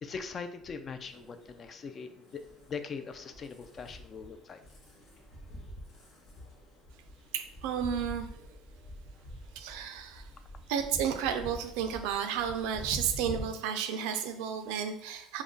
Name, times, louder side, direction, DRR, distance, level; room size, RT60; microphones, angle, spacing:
voice 1, 0.0-4.6, left 5 dB, 40° left, 9 dB, 0.3 m, -41 dB
sound 1, 1.0-13.4, equal, 70° left, 0.8 m, -46 dB
voice 2, 7.3-8.3 9.6-10.3 10.7-15.4, right 8 dB, 85° right, 8 dB, 0.3 m, -32 dB
2.3 x 2.1 x 3.7 m, 0.73 s
supercardioid pair, 95°, 0 cm